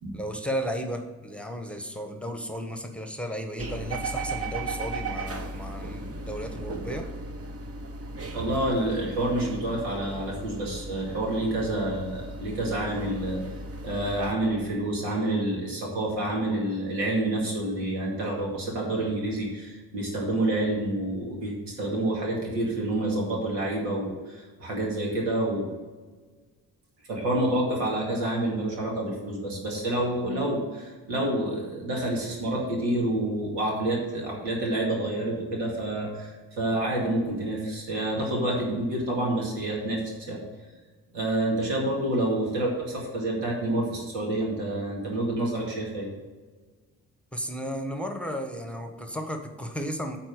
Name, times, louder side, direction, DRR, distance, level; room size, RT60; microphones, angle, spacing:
voice 1, 0.1-7.1 47.3-50.2, equal, 5° left, 5 dB, 1.2 m, -34 dB
sound 1, 3.6-14.3, right 2 dB, 35° right, 1.1 m, -36 dB
voice 2, 8.3-13.4 13.8-25.7 27.1-40.0 40.3-40.4 41.1-46.1, right 1 dB, 85° right, -2 dB, 2.3 m, -28 dB
8.9 x 4.2 x 6.7 m, 1.4 s
supercardioid pair, 55°, 41 cm